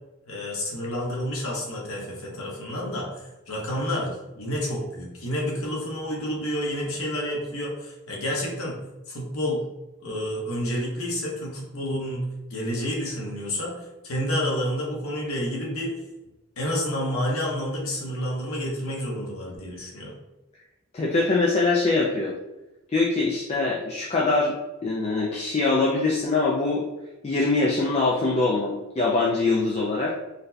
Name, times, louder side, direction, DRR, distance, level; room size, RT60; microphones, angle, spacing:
voice 1, 0.3-3.1 3.5-8.8 9.1-9.6 10.0-12.2 12.5-15.9 16.6-20.1, equal, 80° left, -3 dB, 1.0 m, -29 dB
voice 2, 20.9-22.4 22.9-26.9 27.2-30.1, left 3 dB, 30° left, -3 dB, 0.3 m, -23 dB
3.8 x 2.2 x 2.7 m, 1.0 s
head